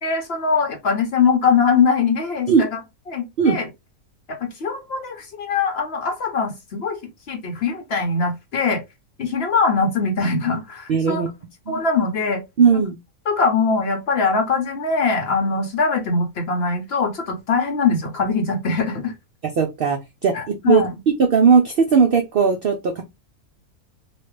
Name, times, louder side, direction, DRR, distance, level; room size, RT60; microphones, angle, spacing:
voice 1, 0.0-2.8 3.1-3.7 4.3-7.0 7.3-8.8 9.2-11.2 11.7-12.4 12.7-12.8 13.3-19.1 20.3-20.9, left 4 dB, 55° left, 4 dB, 0.8 m, -22 dB
voice 2, 10.9-11.3 11.7-11.8 12.6-13.0 19.6-20.9 21.2-23.0, right 6 dB, 85° right, 4 dB, 0.5 m, -17 dB
3.1 x 2.4 x 3.1 m, 0.22 s
omnidirectional pair, 1.6 m